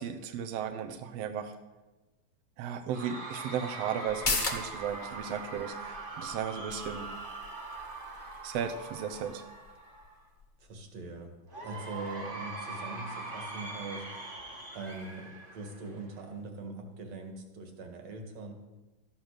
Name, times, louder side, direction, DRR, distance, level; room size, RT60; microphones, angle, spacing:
voice 1, 0.0-1.5 2.6-7.1 8.4-9.4, right 8 dB, 75° right, 7 dB, 1.5 m, -35 dB
Cheering / Crowd, 2.9-10.2 11.5-16.2, right 3 dB, 25° right, 1.1 m, -42 dB
sound 1, 4.0-11.2 11.5-11.6, left 3 dB, 85° left, 0.4 m, -39 dB
voice 2, 10.6-11.3 11.6-14.3 14.7-18.5, right 3 dB, 55° right, 4 dB, 2.8 m, -42 dB
13.5 x 10.5 x 6.5 m, 1.1 s
omnidirectional pair, 3.8 m